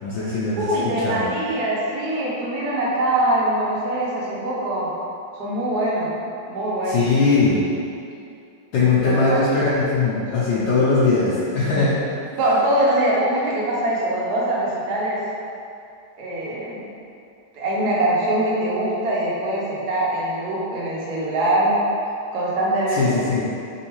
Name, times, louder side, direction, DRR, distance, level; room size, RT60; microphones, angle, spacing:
voice 1, 0.0-1.3 6.9-7.6 8.7-11.9 22.9-23.5, left 3 dB, 75° left, -9 dB, 1.2 m, -20 dB
voice 2, 0.6-4.9 5.4-6.1 6.5-7.0 9.0-9.4 12.4-15.2 16.2-16.8 17.5-21.8 22.3-23.2, right 1 dB, 70° right, -6 dB, 1.0 m, -23 dB
3.4 x 3.1 x 3.0 m, 2.6 s
omnidirectional pair, 2.3 m